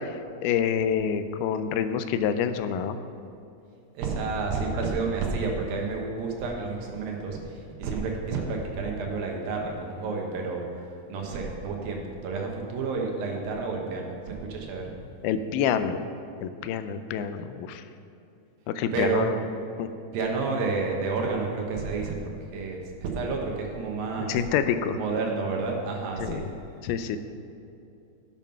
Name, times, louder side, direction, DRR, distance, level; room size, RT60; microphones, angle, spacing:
voice 1, 0.0-3.0 15.2-16.1 16.4-17.8 18.7-19.4 19.8-19.9 24.2-25.0 26.2-26.4 26.8-27.2, left 8 dB, 90° left, 10 dB, 2.5 m, -27 dB
voice 2, 3.9-7.4 7.8-14.9 18.9-19.2 20.1-24.4 25.0-26.5, right 4 dB, 75° right, 0 dB, 2.9 m, -30 dB
11.0 x 7.1 x 5.7 m, 2.6 s
omnidirectional pair, 4.3 m